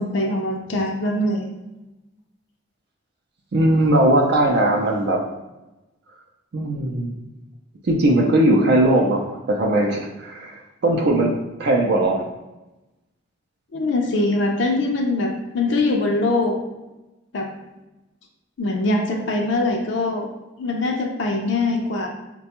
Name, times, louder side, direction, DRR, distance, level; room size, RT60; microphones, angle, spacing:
voice 1, 0.0-1.5 13.7-16.6 17.3-17.5 18.6-20.3 20.6-22.1, left 2 dB, 65° left, 1 dB, 0.5 m, -22 dB
voice 2, 3.5-5.2 6.5-7.1 7.8-11.3 11.6-12.2, right 1 dB, 55° right, 1 dB, 0.4 m, -19 dB
4.1 x 2.2 x 2.9 m, 1.0 s
head